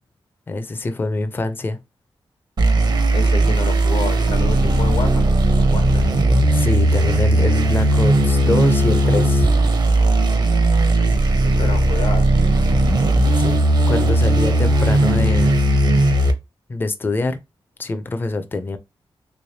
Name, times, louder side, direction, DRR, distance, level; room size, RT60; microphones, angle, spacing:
voice 1, 0.5-1.8 6.5-9.5 13.4-13.6 13.9-15.6 16.7-17.4 17.8-18.8, left 2 dB, 25° left, 0.4 m, -24 dB
sound 1, 2.6-16.3, right 1 dB, 50° right, 0.6 m, -17 dB
voice 2, 3.1-5.3 5.7-6.1 11.4-12.4, left 4 dB, 90° left, 0.9 m, -29 dB
3.3 x 3.1 x 2.6 m
wide cardioid pair, 170°, 9 cm